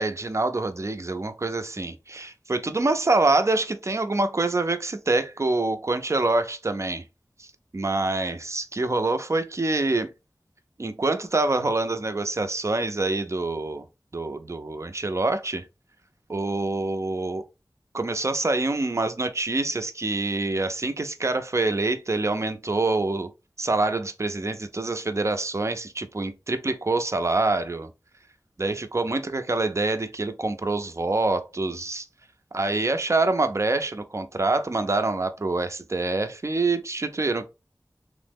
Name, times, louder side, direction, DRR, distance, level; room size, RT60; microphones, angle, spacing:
voice 1, 0.0-7.0 7.4-7.5 7.7-10.1 10.8-13.8 14.1-15.6 16.3-17.4 17.9-23.3 23.6-27.9 28.6-32.1 32.5-37.4, right 2 dB, 45° right, 0.4 m, -26 dB
3.1 x 2.0 x 3.4 m
wide cardioid pair, 55°, 7 cm